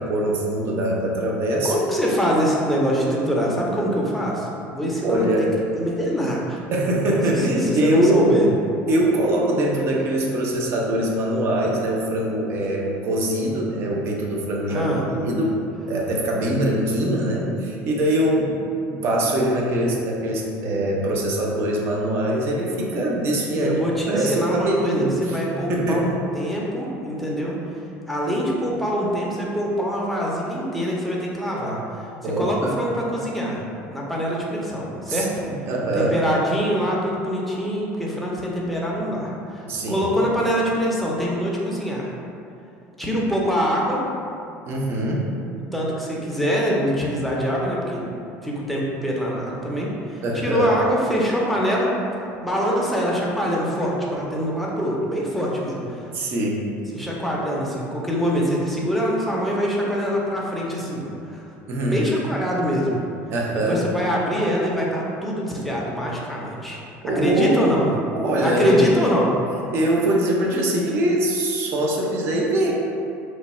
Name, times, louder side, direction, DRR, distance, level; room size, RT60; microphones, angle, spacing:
voice 1, 0.0-1.7 5.0-5.5 6.7-8.3 8.9-15.6 15.9-23.7 24.1-26.1 32.2-32.8 35.1-36.1 39.6-40.1 44.7-45.3 50.2-50.7 56.1-56.6 61.7-62.1 63.3-63.9 67.0-67.6 68.1-68.8 69.7-72.7, right 1 dB, 45° right, -1 dB, 0.6 m, -23 dB
voice 2, 1.6-5.5 5.8-6.6 7.5-8.5 14.7-15.0 23.6-27.5 28.1-31.8 32.2-33.6 33.9-35.3 35.9-42.1 43.0-44.0 45.7-48.0 48.4-51.9 52.4-56.1 56.9-61.4 61.8-62.9 63.7-66.8 67.1-67.9 68.4-69.3, equal, ahead, -4 dB, 0.5 m, -24 dB
3.1 x 2.2 x 4.1 m, 2.6 s
cardioid pair, 140°, 6 cm